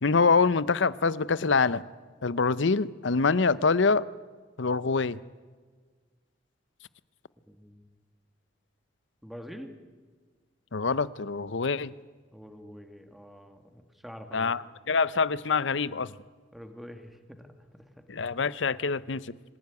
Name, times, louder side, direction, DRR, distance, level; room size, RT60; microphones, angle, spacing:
voice 1, 0.0-1.8 2.2-4.1 4.6-5.2 10.7-11.9 14.3-16.1 18.1-19.3, left 4 dB, 70° left, 18 dB, 0.7 m, -25 dB
voice 2, 7.5-7.9 9.2-9.7 12.3-14.5 16.5-17.8, equal, ahead, 6 dB, 2.1 m, -46 dB
26.0 x 15.5 x 9.6 m, 1.5 s
head